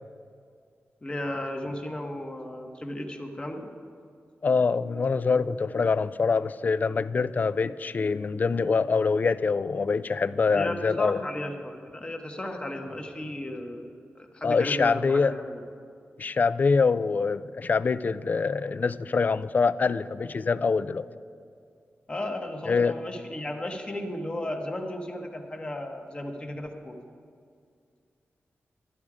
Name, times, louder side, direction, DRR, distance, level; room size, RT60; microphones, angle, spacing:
voice 1, 1.0-3.7 10.5-13.9 14.1-15.6 22.1-27.0, left 1 dB, 25° left, 3 dB, 1.1 m, -34 dB
voice 2, 4.4-11.2 14.4-15.3 16.2-21.1 22.7-23.0, left 4 dB, 40° left, 15 dB, 0.3 m, -25 dB
12.5 x 10.5 x 4.9 m, 2.3 s
wide cardioid pair, 145°, 5 cm